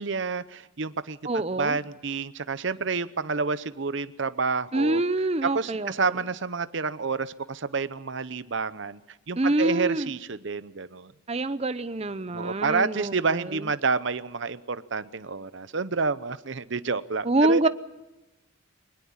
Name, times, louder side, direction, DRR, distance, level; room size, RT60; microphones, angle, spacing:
voice 1, 0.0-1.2 1.6-5.0 5.5-9.0 9.3-11.1 12.3-17.7, right 4 dB, 60° right, 0.8 m, -29 dB
voice 2, 1.2-1.8 4.7-6.1 9.4-10.1 11.3-13.7 17.2-17.7, right 2 dB, 30° right, 0.7 m, -26 dB
22.0 x 20.5 x 7.3 m
head